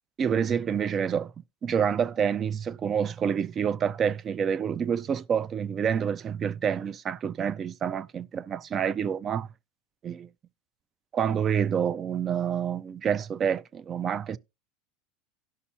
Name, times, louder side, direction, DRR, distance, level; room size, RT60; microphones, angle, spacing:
voice 1, 0.2-1.3 1.6-9.5 10.0-10.3 11.1-14.4, right 7 dB, 30° right, 0.4 m, -28 dB
17.0 x 5.7 x 2.9 m
supercardioid pair, 140°, 0 cm